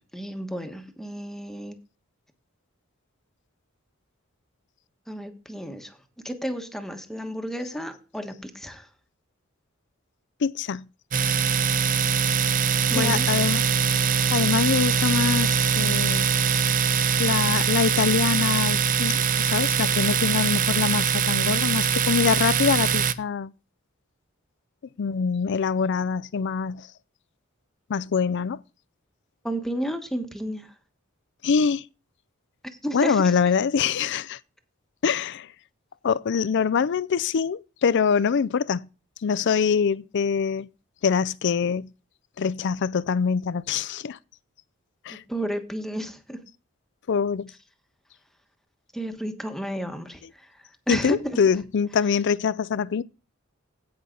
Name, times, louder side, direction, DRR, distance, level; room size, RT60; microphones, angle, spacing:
voice 1, 0.1-1.8 5.1-6.0 6.2-8.9 12.9-13.3 29.4-30.7 32.8-33.3 45.1-46.4 48.9-50.5 50.9-51.4, equal, ahead, 1.2 m, -32 dB
voice 2, 10.4-10.9 13.0-13.6 14.3-16.3 17.2-23.5 25.0-26.9 27.9-28.6 31.4-31.8 32.9-34.4 35.0-35.5 36.0-38.9 39.2-40.7 41.0-41.9 42.4-44.2 45.1-45.2 47.1-47.5 50.9-53.0, left 6 dB, 60° left, 0.4 m, -24 dB
Domestic sounds home sounds, 11.1-23.1, right 7 dB, 40° right, 0.5 m, -22 dB
16.5 x 5.6 x 3.9 m
head